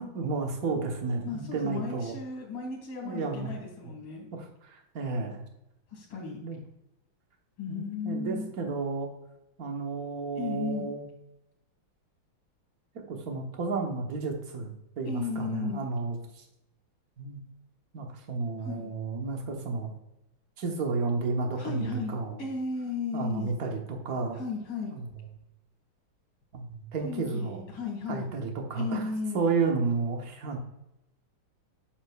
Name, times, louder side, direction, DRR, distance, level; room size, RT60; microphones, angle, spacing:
voice 1, 0.0-2.2 3.0-3.5 4.3-5.4 6.4-6.6 7.7-9.1 9.6-11.1 13.1-16.4 17.2-17.4 17.9-19.9 20.6-22.4 23.1-24.4 24.9-25.1 26.5-27.7 28.1-30.6, right 4 dB, 50° right, 2 dB, 1.4 m, -32 dB
voice 2, 1.2-4.3 5.9-6.4 7.6-8.5 10.4-10.9 15.1-15.8 18.6-18.9 21.5-23.5 24.3-25.0 27.0-28.3 28.7-29.5, left 4 dB, 70° left, -2 dB, 2.2 m, -35 dB
8.0 x 6.3 x 2.3 m, 0.87 s
omnidirectional pair, 2.3 m